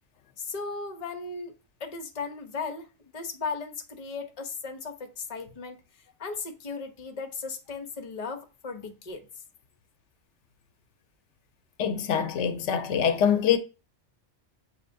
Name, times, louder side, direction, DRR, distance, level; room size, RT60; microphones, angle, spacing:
voice 1, 0.4-1.5 1.8-2.9 3.1-5.8 6.2-9.3, left 4 dB, 40° left, 0.8 m, -36 dB
voice 2, 11.8-13.6, left 8 dB, 85° left, 0.9 m, -24 dB
7.3 x 2.8 x 2.6 m
omnidirectional pair, 1.2 m